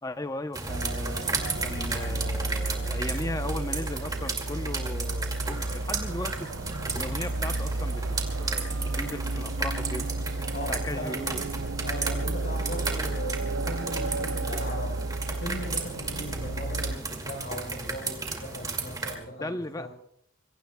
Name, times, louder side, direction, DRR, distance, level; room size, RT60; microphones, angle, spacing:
voice 1, 0.0-6.5 6.9-8.0 8.4-10.1 10.7-11.4 19.4-19.9, left 2 dB, 20° left, 9 dB, 0.7 m, -37 dB
sound 1, 0.5-19.1, right 3 dB, 20° right, 2.3 m, -34 dB
sound 2, 0.7-17.0, right 2 dB, 90° right, 0.7 m, -32 dB
voice 2, 10.5-11.1 11.8-15.0 15.3-19.9, left 1 dB, 55° left, -1 dB, 4.7 m, -38 dB
26.5 x 22.5 x 2.3 m, 0.68 s
head